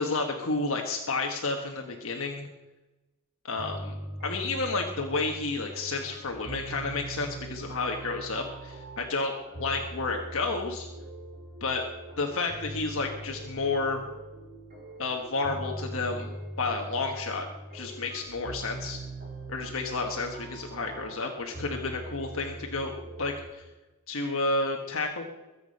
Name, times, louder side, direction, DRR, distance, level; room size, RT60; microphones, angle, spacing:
voice 1, 0.0-2.5 3.4-3.9 4.2-9.3 9.6-10.9 11.6-11.8 12.2-14.0 15.0-16.3 16.6-17.5 17.7-19.0 19.5-22.9 23.2-23.6 24.1-25.2, left 3 dB, 65° left, 2 dB, 1.4 m, -31 dB
sound 1, 3.6-23.5, right 1 dB, 40° right, 4.1 m, -42 dB
22.5 x 8.5 x 5.4 m, 1.1 s
head